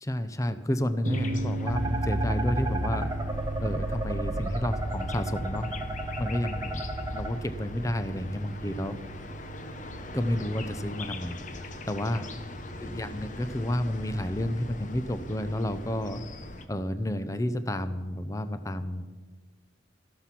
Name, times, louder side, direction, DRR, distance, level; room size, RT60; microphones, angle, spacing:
voice 1, 0.0-3.1 3.6-5.7 6.2-6.9 7.1-9.0 10.1-11.4 11.6-12.3 12.8-16.2 16.7-19.0, left 1 dB, 15° left, 11 dB, 0.6 m, -31 dB
sound 1, 1.0-16.7, left 2 dB, 45° left, 0.9 m, -42 dB
sound 2, 1.1-14.0, right 2 dB, 45° right, 0.6 m, -37 dB
sound 3, 1.7-7.3, right 1 dB, 20° right, 1.0 m, -32 dB
14.0 x 12.0 x 5.9 m, 1.4 s
head